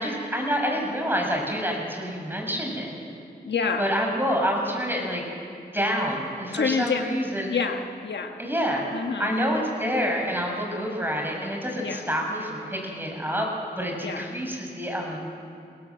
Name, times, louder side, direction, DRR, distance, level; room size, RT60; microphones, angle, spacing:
voice 1, 0.0-2.9 3.8-5.2 5.7-7.6 8.4-13.5 13.8-15.2, equal, 10° right, 0 dB, 6.8 m, -27 dB
voice 2, 3.4-3.9 6.5-7.0 7.5-8.3 8.9-9.4 11.8-12.0 14.0-14.4, left 5 dB, 85° left, 5 dB, 1.3 m, -27 dB
23.0 x 17.5 x 7.7 m, 2.4 s
cardioid pair, 40°, 18 cm